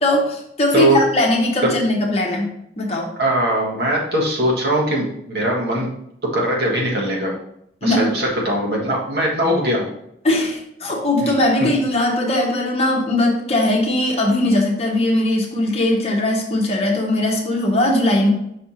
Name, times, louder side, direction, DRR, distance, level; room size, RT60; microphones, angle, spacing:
voice 1, 0.0-2.5 2.8-3.1 7.8-8.1 10.2-18.3, left 1 dB, 35° left, 0 dB, 1.0 m, -19 dB
voice 2, 3.2-5.9 6.3-7.3 7.8-9.9, right 1 dB, 55° right, -2 dB, 1.5 m, -20 dB
5.7 x 4.3 x 4.3 m, 0.76 s
head